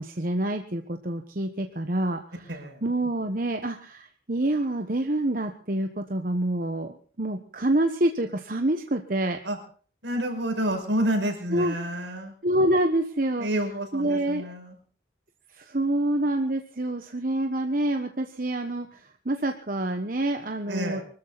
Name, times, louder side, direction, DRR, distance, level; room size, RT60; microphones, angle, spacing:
voice 1, 0.0-2.6 2.8-9.4 11.5-11.7 12.4-13.5 13.9-14.5 15.5-21.0, right 1 dB, 50° right, 5 dB, 1.2 m, -27 dB
voice 2, 2.5-2.8 9.4-9.6 10.0-12.3 13.4-14.8 20.7-21.0, right 1 dB, 80° right, 2 dB, 5.8 m, -29 dB
24.5 x 13.5 x 4.1 m, 0.42 s
head